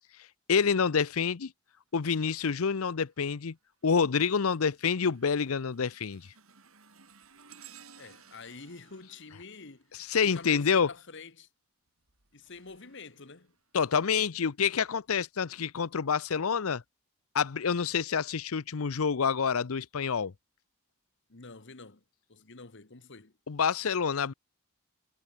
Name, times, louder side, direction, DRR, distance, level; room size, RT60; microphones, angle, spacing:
voice 1, 0.5-1.5 1.9-3.5 3.8-6.2 10.1-10.9 13.7-16.8 17.3-20.3 23.5-24.3, left 6 dB, 80° left, 0.7 m, -27 dB
sound 1, 2.9-3.3 3.8-10.6 11.9-14.1 14.7-14.9 15.8-15.9, right 7 dB, 85° right, 4.0 m, -58 dB
voice 2, 8.0-11.5 12.3-13.5 21.3-22.0 22.3-23.3, left 4 dB, 60° left, 1.6 m, -48 dB
head